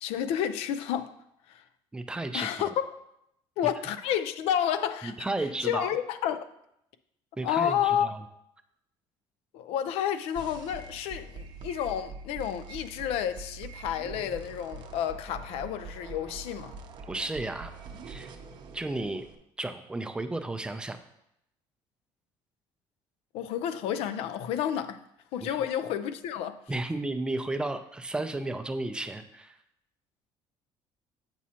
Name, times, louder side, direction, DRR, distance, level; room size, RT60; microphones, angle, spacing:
voice 1, 0.0-1.1 1.5-1.6 2.3-2.7 3.6-5.1 5.6-6.4 7.4-8.1 9.5-16.8 23.3-25.0 25.3-26.6, left 9 dB, 75° left, 0.4 m, -30 dB
voice 2, 1.9-2.7 5.0-5.9 7.4-8.2 17.1-17.7 18.1-18.3 18.7-19.3 19.6-21.0 25.4-25.7 26.7-29.6, right 2 dB, 10° right, 0.4 m, -33 dB
sound 1, 10.4-19.4, right 4 dB, 45° right, 0.6 m, -44 dB
7.2 x 6.2 x 2.8 m
cardioid pair, 140°, 10 cm